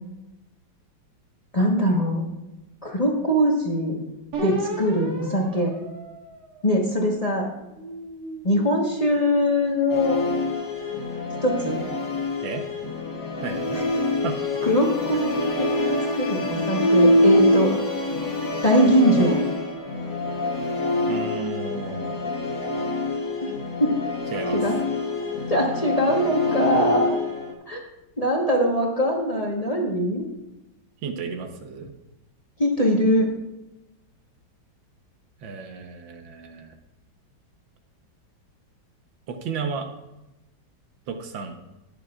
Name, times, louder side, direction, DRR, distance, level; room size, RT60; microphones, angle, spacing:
voice 1, 1.5-2.3 2.8-4.0 4.4-5.7 6.6-7.5 8.4-10.2 11.4-11.8 13.7-13.8 14.6-17.7 18.6-19.4 23.4-23.5 23.8-24.0 24.5-24.7 25.5-27.2 27.7-27.8 28.2-30.3 32.6-33.3, equal, 25° left, -1 dB, 1.1 m, -22 dB
sound 1, 4.3-7.0 7.6-10.1, right 1 dB, 60° right, 2.1 m, -35 dB
Musical instrument, 9.9-27.5, left 1 dB, 75° left, 2.4 m, -25 dB
voice 2, 13.4-13.8 14.2-14.4 21.1-22.2 24.3-24.6 31.0-31.9 35.4-36.7 39.3-39.9 41.1-41.6, right 5 dB, 80° right, 6 dB, 1.7 m, -33 dB
19.5 x 6.9 x 2.4 m, 0.99 s
omnidirectional pair, 2.0 m